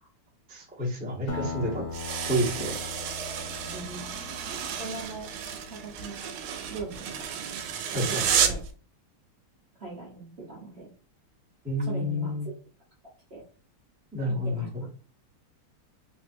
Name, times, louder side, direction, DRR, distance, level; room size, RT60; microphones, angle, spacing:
voice 1, 0.5-2.8 7.9-8.2 11.6-12.5 14.1-14.9, equal, 10° right, -7 dB, 0.6 m, -30 dB
Acoustic guitar, 1.3-6.1, left 5 dB, 75° left, 1.5 m, -40 dB
sound 1, 1.9-8.7, right 8 dB, 80° right, 1.4 m, -31 dB
voice 2, 3.7-4.1 4.5-5.3 5.7-6.3 6.7-7.4 7.9-8.6 9.8-10.9 11.8-12.3 13.3-13.4 14.3-14.7, right 3 dB, 40° right, -5 dB, 1.0 m, -40 dB
3.3 x 2.8 x 2.6 m, 0.40 s
omnidirectional pair, 2.3 m